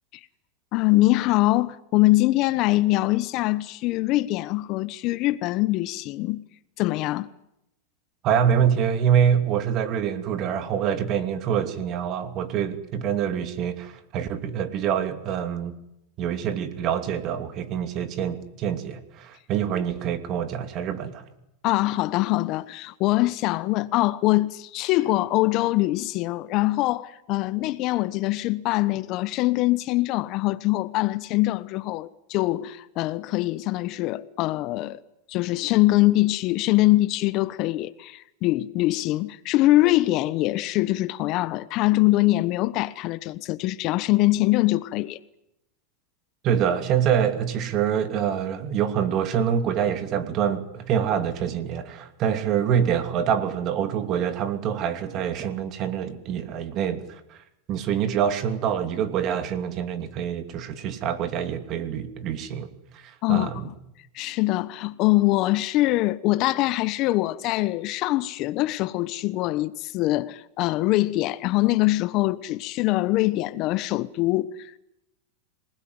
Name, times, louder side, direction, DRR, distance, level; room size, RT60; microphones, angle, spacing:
voice 1, 0.7-6.4 6.8-7.3 21.6-35.0 35.3-45.2 63.2-63.7 64.1-74.7, left 18 dB, 45° left, 1.0 m, -23 dB
voice 2, 8.2-15.7 16.2-21.2 46.4-57.4 57.7-62.7 62.9-63.7, right 8 dB, 40° right, 2.8 m, -25 dB
26.0 x 20.0 x 9.7 m
supercardioid pair, 130°, 0 cm